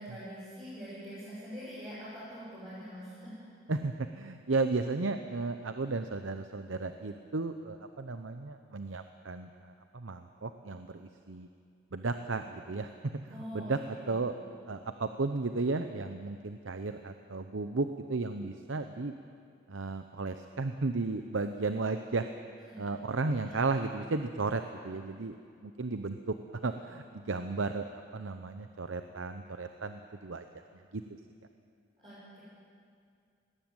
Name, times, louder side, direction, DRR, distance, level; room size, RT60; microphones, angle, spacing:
voice 1, 0.0-3.4 13.3-14.2 22.7-22.9 32.0-32.4, equal, 25° right, -11 dB, 7.2 m, -44 dB
voice 2, 3.7-11.5 11.9-14.3 14.7-19.1 19.7-22.3 22.8-27.9 28.1-31.0, right 3 dB, 85° right, 8 dB, 0.8 m, -34 dB
19.0 x 17.5 x 9.1 m, 2.3 s
head